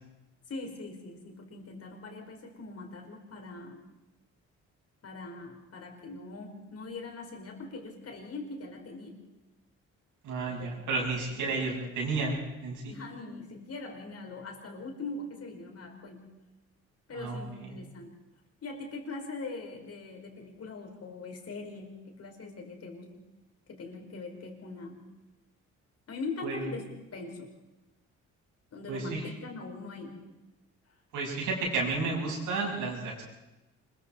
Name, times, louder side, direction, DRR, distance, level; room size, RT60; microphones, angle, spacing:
voice 1, 0.5-3.8 5.0-9.2 10.4-11.6 12.9-16.2 17.1-18.1 18.6-23.3 23.7-25.0 26.1-26.8 27.1-27.5 28.7-30.2, left 3 dB, 55° left, 2 dB, 5.3 m, -42 dB
voice 2, 10.2-12.9 17.1-17.8 26.4-26.7 28.9-29.2 31.1-33.2, right 3 dB, 80° right, -1 dB, 6.9 m, -32 dB
26.0 x 23.0 x 4.7 m, 1.0 s
cardioid pair, 90°, 30 cm